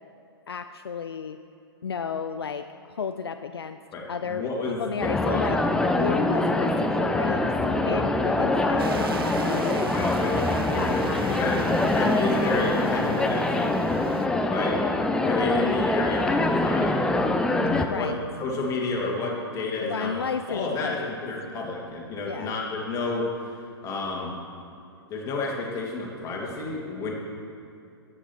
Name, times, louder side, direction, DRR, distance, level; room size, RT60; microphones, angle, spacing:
voice 1, 0.5-1.4 1.8-3.8 4.1-5.6 6.0-10.5 10.8-11.5 12.2-12.5 17.8-18.2 19.8-21.1 22.3-22.6, left 6 dB, 70° left, 9 dB, 0.5 m, -33 dB
voice 2, 3.9-5.7 6.4-6.5 9.9-10.4 10.7-13.7 14.4-14.8 15.2-17.1 17.6-18.1 18.4-20.2 20.5-23.5 23.8-24.4 25.1-27.1, left 3 dB, 25° left, -2 dB, 2.3 m, -31 dB
sound 1, 5.0-17.9, left 2 dB, 5° left, 0.5 m, -24 dB
sound 2, 8.8-14.3, right 5 dB, 60° right, 0.8 m, -38 dB
13.0 x 9.0 x 4.5 m, 2.6 s
figure-of-eight pair, 110°, 13 cm